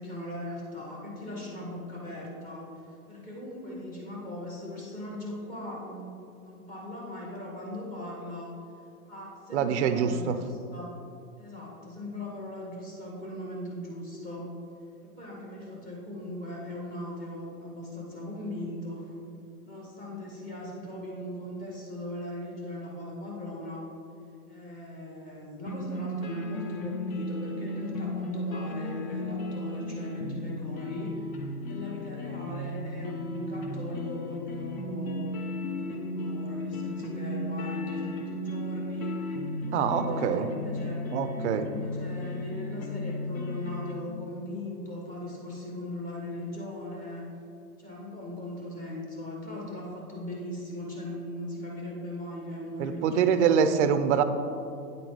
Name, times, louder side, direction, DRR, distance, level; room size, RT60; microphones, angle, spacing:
voice 1, 0.0-2.8 3.1-6.2 6.4-8.5 9.1-10.9 11.4-14.5 15.0-19.1 19.6-23.8 24.5-31.3 31.6-35.4 35.7-39.3 39.6-41.0 41.6-47.3 47.8-53.5, left 1 dB, 15° left, -3 dB, 1.3 m, -39 dB
voice 2, 9.5-10.4 39.7-40.5 41.1-41.7 52.8-54.2, right 7 dB, 50° right, 10 dB, 0.5 m, -25 dB
sound 1, 25.7-43.9, left 1 dB, 60° left, 1.0 m, -35 dB
9.0 x 4.0 x 4.6 m, 2.5 s
hypercardioid pair, 145°, 47 cm